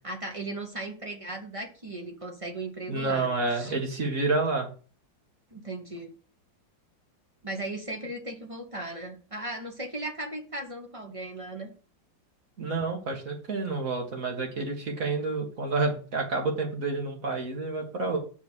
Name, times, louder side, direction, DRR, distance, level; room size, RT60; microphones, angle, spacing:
voice 1, 0.0-3.8 5.5-6.1 7.4-11.7, right 2 dB, 20° right, 3 dB, 1.0 m, -37 dB
voice 2, 2.9-4.7 12.6-18.2, right 3 dB, 45° right, 1 dB, 2.4 m, -29 dB
7.2 x 5.4 x 6.3 m, 0.38 s
omnidirectional pair, 2.0 m